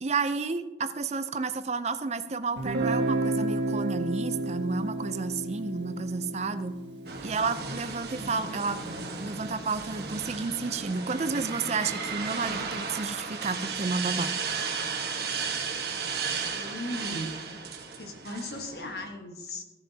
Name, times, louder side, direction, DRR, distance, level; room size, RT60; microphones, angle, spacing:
voice 1, 0.0-6.8 7.2-8.8 9.2-14.3, right 4 dB, 40° right, 12 dB, 0.5 m, -31 dB
Guitar, 2.6-8.3, right 2 dB, 80° right, 1.5 m, -32 dB
sound 1, 7.1-19.1, right 5 dB, 60° right, 1.3 m, -34 dB
voice 2, 16.4-17.4 18.0-19.6, left 1 dB, 60° left, 5 dB, 1.3 m, -37 dB
14.5 x 10.5 x 2.8 m, 1.2 s
head